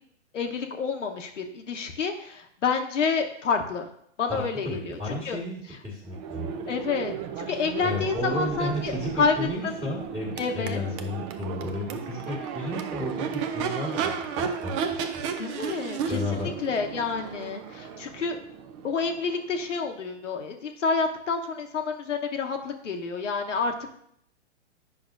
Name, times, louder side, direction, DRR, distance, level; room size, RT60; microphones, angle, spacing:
voice 1, 0.3-3.9 4.2-5.0 5.2-5.4 6.7-9.3 10.4-10.8 12.6-12.7 15.4-16.2 16.6-18.4 18.8-23.9, left 5 dB, 85° left, 3 dB, 1.0 m, -29 dB
voice 2, 4.3-6.5 7.8-15.2 16.1-16.5, left 1 dB, 10° right, -5 dB, 1.6 m, -33 dB
Crowd / Race car auto racing / Accelerating revving vroom, 6.1-19.9, right 7 dB, 25° right, 0.5 m, -34 dB
8.6 x 5.8 x 2.5 m, 0.69 s
hypercardioid pair, 130°, 36 cm